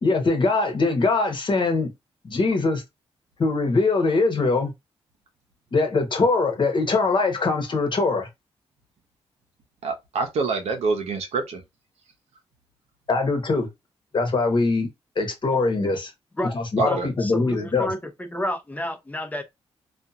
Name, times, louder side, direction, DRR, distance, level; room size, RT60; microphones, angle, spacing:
voice 1, 0.0-1.9 2.2-2.8 3.4-4.7 5.7-8.3 13.1-13.7 14.1-14.9 15.2-16.1 16.5-17.9, left 3 dB, 50° left, 1.0 m, -22 dB
voice 2, 9.8-11.6 16.8-17.1, right 4 dB, 85° right, 0.8 m, -26 dB
voice 3, 16.8-19.4, left 1 dB, 15° left, 0.7 m, -30 dB
2.7 x 2.4 x 2.3 m
cardioid pair, 65°, 11 cm